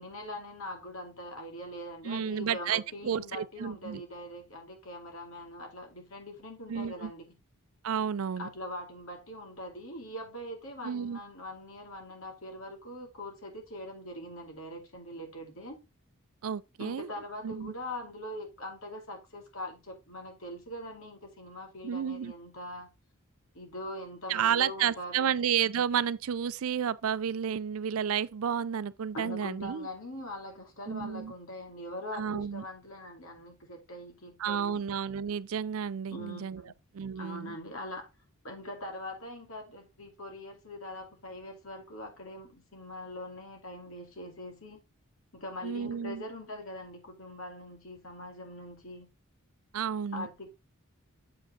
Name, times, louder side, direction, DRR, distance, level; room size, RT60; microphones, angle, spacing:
voice 1, 0.0-7.3 8.4-15.8 16.8-22.9 23.5-25.4 29.1-34.8 36.1-36.7 37.2-38.1 38.4-44.8 45.3-49.1 50.1-50.5, left 1 dB, 70° left, 2.6 m, -42 dB
voice 2, 2.0-4.0 6.7-7.1 7.8-8.5 10.8-11.2 16.4-17.1 17.4-17.7 21.8-22.3 24.3-29.9 30.9-31.3 32.1-32.6 34.4-36.6 36.9-37.6 45.6-46.2 49.7-50.5, right 8 dB, 75° right, 0.4 m, -31 dB
7.5 x 5.0 x 3.8 m
head